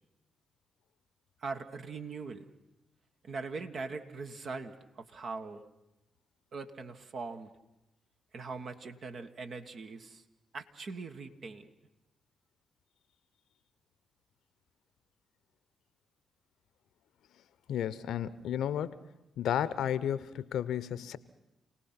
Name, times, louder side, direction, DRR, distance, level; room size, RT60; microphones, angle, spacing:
voice 1, 1.4-2.5 3.2-5.6 6.5-7.5 8.3-10.2 10.5-11.7, right 4 dB, 60° right, 6 dB, 1.6 m, -41 dB
voice 2, 17.7-19.0 19.4-21.2, left 10 dB, 80° left, 17 dB, 0.8 m, -32 dB
28.0 x 18.5 x 5.9 m, 0.92 s
supercardioid pair, 45°, 0 cm